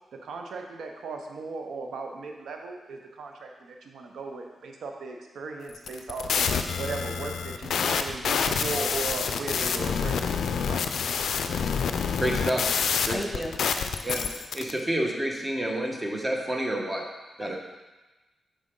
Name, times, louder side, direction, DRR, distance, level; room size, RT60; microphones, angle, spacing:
voice 1, 0.1-6.5 6.8-10.8, right 4 dB, 75° right, 3 dB, 0.6 m, -37 dB
sound 1, 5.8-14.7, left 6 dB, 75° left, 0.3 m, -27 dB
voice 2, 12.2-12.7 13.0-13.2 14.0-14.2 14.5-17.0 17.4-17.6, right 1 dB, 25° right, 1 dB, 1.3 m, -28 dB
voice 3, 13.1-14.3 17.4-17.6, left 1 dB, 25° left, 2 dB, 1.2 m, -37 dB
6.3 x 4.9 x 3.7 m, 1.1 s
supercardioid pair, 40°, 0 cm